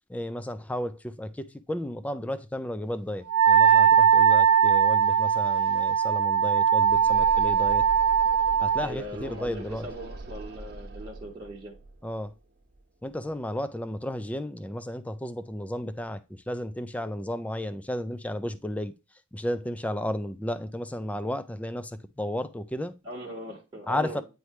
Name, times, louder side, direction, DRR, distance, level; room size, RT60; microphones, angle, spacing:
voice 1, 0.1-7.8 8.6-9.9 12.0-12.3 13.0-16.2 16.5-18.9 19.3-23.0 23.9-24.2, left 1 dB, 5° left, 0.3 m, -33 dB
Wind instrument woodwind instrument, 3.3-8.9, right 8 dB, 85° right, 0.4 m, -20 dB
sound 1, 4.7-13.5, right 2 dB, 50° right, 0.9 m, -43 dB
voice 2, 8.8-11.8 23.0-24.2, equal, 25° right, 1.5 m, -39 dB
9.3 x 3.2 x 3.1 m
head